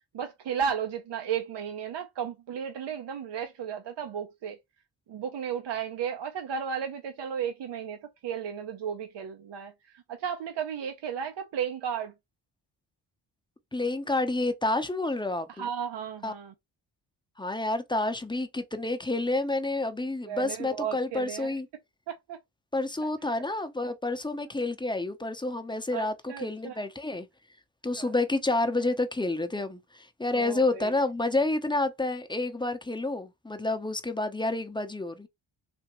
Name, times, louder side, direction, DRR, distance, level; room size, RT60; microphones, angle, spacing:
voice 1, 0.1-4.6 5.1-12.1 15.5-16.5 20.2-21.5 22.1-22.4 25.9-26.8 28.0-28.1 30.3-30.9, right 8 dB, 65° right, 0.8 m, -34 dB
voice 2, 13.7-15.7 16.2-16.3 17.4-21.7 22.7-27.3 27.8-35.3, left 2 dB, 10° left, 0.8 m, -29 dB
3.4 x 2.8 x 3.0 m
cardioid pair, 55°, 46 cm